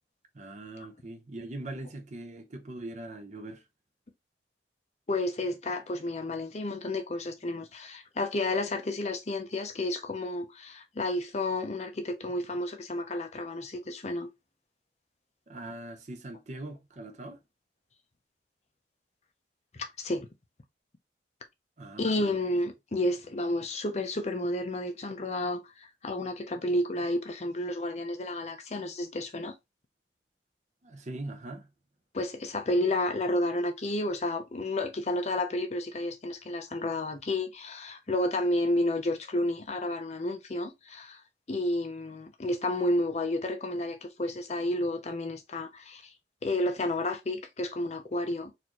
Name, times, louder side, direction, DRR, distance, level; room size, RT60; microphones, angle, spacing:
voice 1, 0.3-3.6 15.5-17.4 21.8-22.3 30.8-31.7, right 2 dB, 40° right, 0.7 m, -41 dB
voice 2, 5.1-14.3 19.7-20.3 22.0-29.5 32.1-41.2 41.5-46.1 46.4-48.5, left 1 dB, 40° left, 0.6 m, -31 dB
4.2 x 2.7 x 3.0 m
head